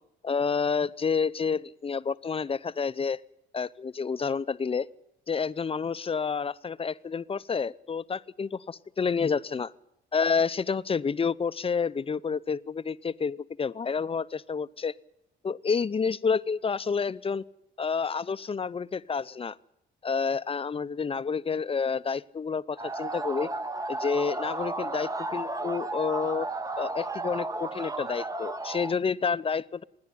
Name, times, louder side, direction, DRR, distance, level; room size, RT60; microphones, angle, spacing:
voice 1, 0.2-3.2 3.5-4.9 5.3-9.7 10.1-14.9 15.4-17.4 17.8-19.6 20.0-23.5 23.9-26.5 26.8-29.8, left 5 dB, 30° left, 15 dB, 0.7 m, -29 dB
sound 1, 22.8-29.0, right 2 dB, 15° right, 0.9 m, -33 dB
26.5 x 10.5 x 9.9 m, 0.83 s
cardioid pair, 90°, 20 cm